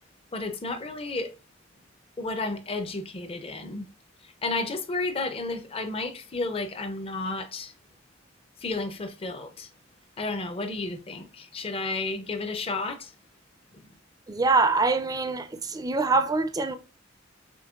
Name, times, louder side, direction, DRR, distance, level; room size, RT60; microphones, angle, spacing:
voice 1, 0.3-1.3 2.2-3.9 4.2-7.7 8.6-9.7 10.2-13.1, left 3 dB, 30° left, 0.6 m, -32 dB
voice 2, 14.3-16.8, right 3 dB, 20° right, 0.4 m, -24 dB
5.2 x 3.0 x 2.4 m
head